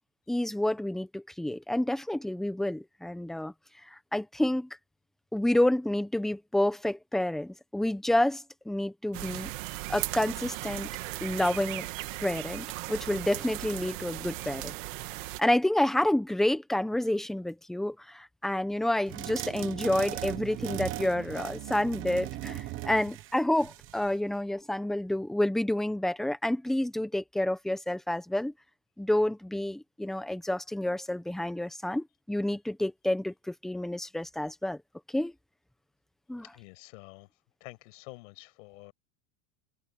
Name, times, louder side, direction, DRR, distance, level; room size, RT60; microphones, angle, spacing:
voice 1, 0.3-3.5 3.9-4.7 5.3-9.5 9.9-10.9 11.2-11.8 12.2-14.7 15.4-28.5 29.0-34.8 35.1-35.3 36.3-36.4, left 1 dB, ahead, 0.8 m, -29 dB
sound 1, 9.1-15.4, right 19 dB, 60° right, 2.1 m, -37 dB
sound 2, 19.1-24.1, right 15 dB, 30° right, 1.3 m, -38 dB
voice 2, 36.4-37.3 37.6-38.9, left 24 dB, 60° left, 7.5 m, -48 dB
supercardioid pair, 180°, 43 cm